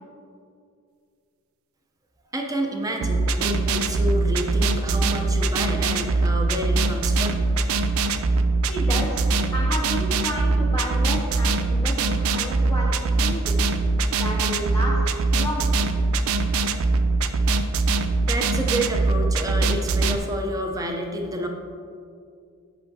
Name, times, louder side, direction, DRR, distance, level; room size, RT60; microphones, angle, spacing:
voice 1, 2.3-7.4 18.2-21.5, right 1 dB, 15° right, 2 dB, 0.6 m, -29 dB
sound 1, 3.0-20.2, right 3 dB, 70° right, 0.4 m, -22 dB
voice 2, 8.7-13.7 14.1-15.8, equal, 10° left, -3 dB, 0.7 m, -31 dB
8.2 x 5.6 x 2.7 m, 2.4 s
head